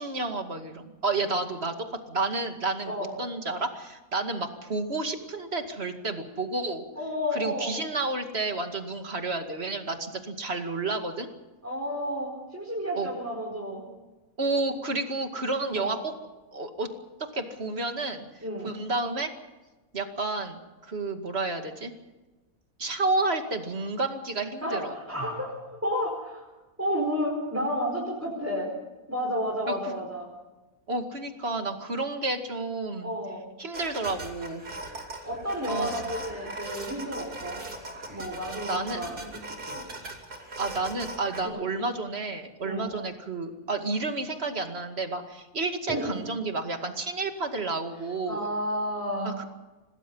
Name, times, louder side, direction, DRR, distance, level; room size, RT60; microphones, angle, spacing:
voice 1, 0.0-1.7 2.1-6.8 7.3-11.3 12.9-13.1 14.4-16.1 16.5-16.9 17.3-18.3 18.6-19.3 19.9-21.9 22.8-24.9 29.7-30.0 30.9-33.1 33.6-34.6 35.7-35.9 38.7-39.0 40.6-48.5 49.2-49.4, right 3 dB, 40° right, 5 dB, 2.5 m, -30 dB
voice 2, 2.8-3.2 6.9-7.7 11.6-13.9 15.7-16.0 18.4-18.7 24.6-26.5 26.8-28.7 29.1-30.3 33.0-33.5 35.2-37.6 38.1-39.2 39.6-39.8 41.5-41.6 42.6-43.0 45.9-46.1 48.3-49.4, equal, 10° right, -2 dB, 4.6 m, -31 dB
sound 1, 33.7-41.4, right 2 dB, 85° right, 3.8 m, -39 dB
27.0 x 19.5 x 5.5 m, 1.1 s
omnidirectional pair, 1.6 m